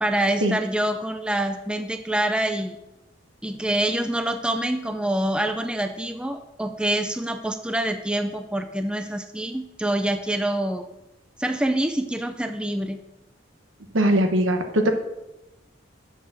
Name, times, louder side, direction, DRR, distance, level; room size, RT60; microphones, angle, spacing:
voice 1, 0.0-2.8 3.4-10.9 11.4-13.0, right 1 dB, 5° right, 8 dB, 0.4 m, -26 dB
voice 2, 13.9-14.9, right 1 dB, 75° right, 5 dB, 1.3 m, -20 dB
8.4 x 7.1 x 6.2 m, 0.96 s
head